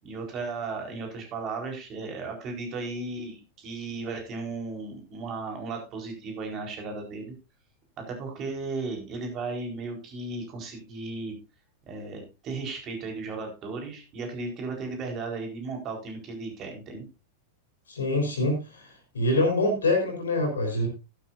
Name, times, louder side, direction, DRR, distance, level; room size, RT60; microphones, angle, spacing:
voice 1, 0.0-7.3 8.0-11.4 11.9-17.1, right 3 dB, 35° right, 3 dB, 4.3 m, -35 dB
voice 2, 17.9-20.9, left 2 dB, 70° left, 3 dB, 3.7 m, -25 dB
13.0 x 11.5 x 2.6 m, 0.28 s
figure-of-eight pair, 90°, 0 cm